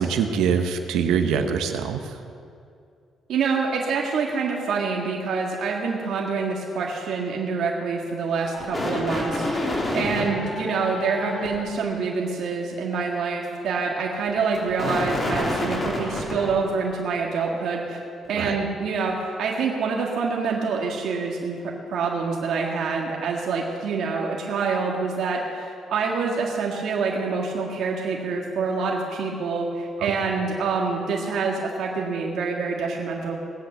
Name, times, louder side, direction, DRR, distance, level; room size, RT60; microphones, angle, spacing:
voice 1, 0.0-2.0 18.3-18.5 30.0-30.1, right 7 dB, 90° right, 6 dB, 1.1 m, -23 dB
voice 2, 3.3-18.0 18.3-21.6 21.9-33.4, right 4 dB, 75° right, -1 dB, 1.7 m, -26 dB
sound 1, 8.4-11.6 14.4-16.5, left 1 dB, 25° left, 3.5 m, -28 dB
19.0 x 8.2 x 6.8 m, 2.4 s
cardioid pair, 90°, 0 cm